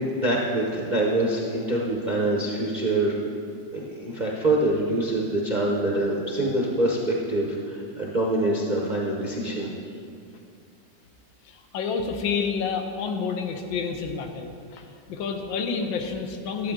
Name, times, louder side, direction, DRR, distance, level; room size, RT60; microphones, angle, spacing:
voice 1, 0.0-3.2 3.7-9.7, right 1 dB, 45° right, -3 dB, 0.5 m, -25 dB
voice 2, 11.4-16.7, left 5 dB, 90° left, 5 dB, 1.6 m, -29 dB
11.5 x 7.8 x 3.6 m, 2.4 s
omnidirectional pair, 2.1 m